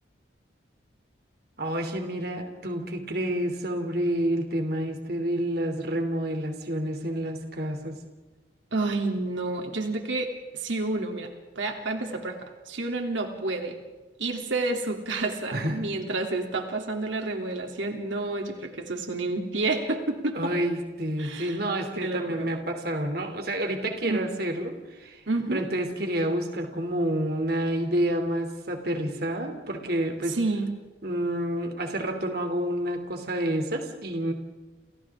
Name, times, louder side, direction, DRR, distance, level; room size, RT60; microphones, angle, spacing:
voice 1, 1.6-8.0 15.5-15.8 20.3-25.2 25.5-30.4 31.0-34.3, right 1 dB, 55° right, 5 dB, 3.0 m, -29 dB
voice 2, 8.7-11.3 11.5-13.7 14.2-20.5 21.2-21.6 22.0-22.5 24.0-24.3 25.3-25.7 30.3-30.7, right 2 dB, 85° right, 2 dB, 3.1 m, -29 dB
30.0 x 30.0 x 3.7 m, 1.2 s
head